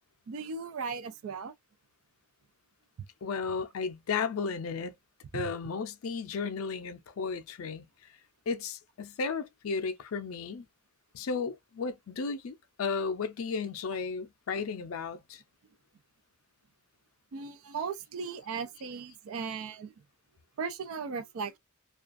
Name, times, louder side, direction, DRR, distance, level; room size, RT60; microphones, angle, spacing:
voice 1, 0.3-1.5 5.3-5.5 17.3-19.9 20.6-21.6, right 5 dB, 75° right, 0.4 m, -37 dB
voice 2, 3.2-4.9 5.3-7.8 8.5-10.6 11.1-15.4, left 5 dB, 75° left, 0.4 m, -34 dB
2.3 x 2.3 x 2.4 m
head